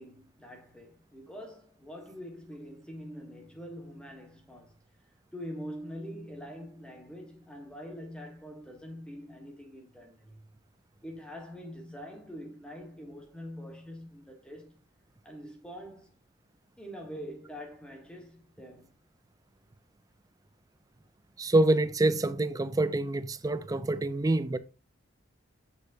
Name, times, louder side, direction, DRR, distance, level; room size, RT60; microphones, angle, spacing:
voice 1, 0.0-4.8 5.3-10.4 11.0-14.8 15.2-16.1 16.8-18.9, equal, 5° left, 1.3 m, -44 dB
voice 2, 21.4-24.6, right 2 dB, 15° right, 0.3 m, -26 dB
8.0 x 6.2 x 2.7 m
head